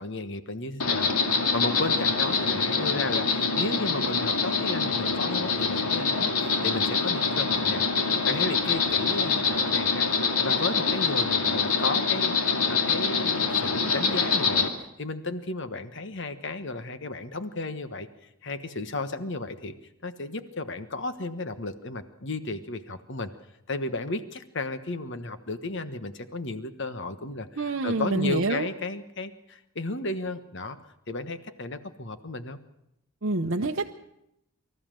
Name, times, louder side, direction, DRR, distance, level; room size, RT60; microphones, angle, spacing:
voice 1, 0.0-6.3 6.6-7.9 8.2-10.1 10.4-12.3 12.7-14.7 15.0-18.1 18.4-19.7 20.0-23.3 23.7-27.5 27.8-30.8 31.1-32.6, left 2 dB, 55° left, 10 dB, 1.3 m, -33 dB
Insect, 0.8-14.7, left 5 dB, 80° left, 2.3 m, -25 dB
voice 2, 27.6-28.7 33.2-33.9, right 2 dB, 55° right, 1 dB, 0.8 m, -27 dB
24.5 x 14.0 x 7.6 m, 0.84 s
head